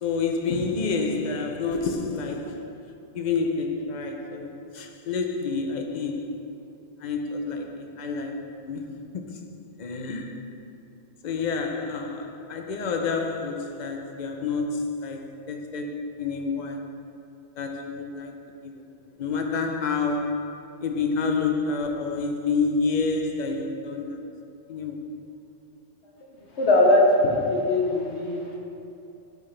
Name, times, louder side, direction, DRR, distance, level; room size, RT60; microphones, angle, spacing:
voice 1, 0.0-2.7 3.1-6.5 7.0-10.5 11.2-16.9 17.6-18.7 19.2-24.2 24.7-25.1, left 4 dB, 45° left, 0.7 m, -29 dB
voice 2, 26.6-28.4, left 2 dB, 65° left, 1.4 m, -20 dB
11.5 x 5.9 x 3.3 m
omnidirectional pair, 1.2 m